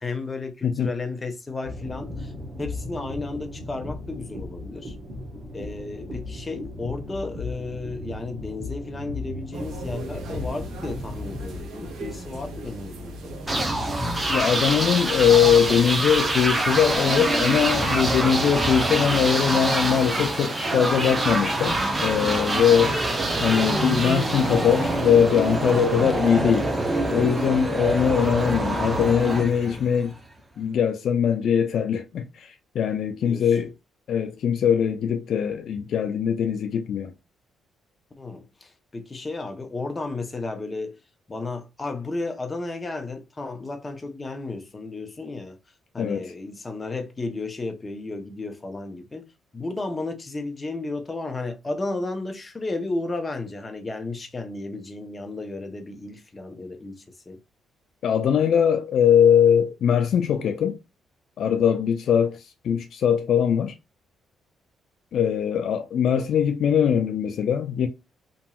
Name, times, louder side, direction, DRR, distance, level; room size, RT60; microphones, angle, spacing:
voice 1, 0.0-2.3 2.6-4.9 5.5-13.9 33.2-33.6 38.2-41.0 41.3-45.6 45.9-49.2 49.5-57.4, left 3 dB, 25° left, 0.7 m, -33 dB
sound 1, 1.6-11.6, left 2 dB, 45° right, 1.0 m, -36 dB
sound 2, 9.5-18.2, equal, 75° right, 0.8 m, -38 dB
sound 3, 13.5-30.2, right 2 dB, 20° right, 0.7 m, -25 dB
voice 2, 14.3-23.0 23.4-26.7 27.1-30.1 30.6-33.7 34.1-37.1 46.0-46.3 58.0-60.8 61.4-63.7 65.1-67.9, left 8 dB, 65° left, 0.4 m, -21 dB
2.9 x 2.6 x 2.3 m
cardioid pair, 90°, 0 cm